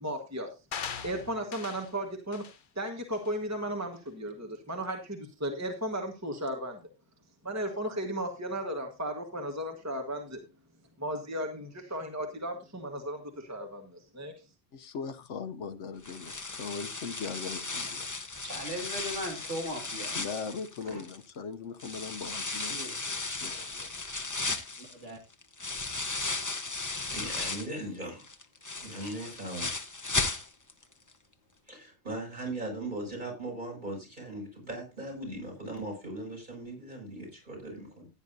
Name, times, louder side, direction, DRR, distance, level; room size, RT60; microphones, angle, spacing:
voice 1, 0.0-0.5 1.0-2.4 2.7-6.8 7.4-10.4 11.0-14.3, right 1 dB, 15° right, 1.4 m, -35 dB
sound 1, 0.7-1.9 2.3-2.6 3.1-3.3, left 7 dB, 50° left, 0.8 m, -40 dB
voice 2, 14.7-18.1 19.3-19.4 20.1-23.9, left 5 dB, 75° left, 1.1 m, -40 dB
sound 2, 16.0-21.3 21.8-27.8 28.2-30.8 31.1-31.2 31.7-31.8, left 3 dB, 20° left, 0.7 m, -35 dB
voice 3, 18.4-20.1 22.7-23.0 25.0-25.2, equal, 75° right, 2.5 m, -37 dB
voice 4, 27.1-28.3 28.8-29.7 31.7-38.1, right 1 dB, 40° right, 6.8 m, -39 dB
15.5 x 9.6 x 2.7 m
omnidirectional pair, 1.2 m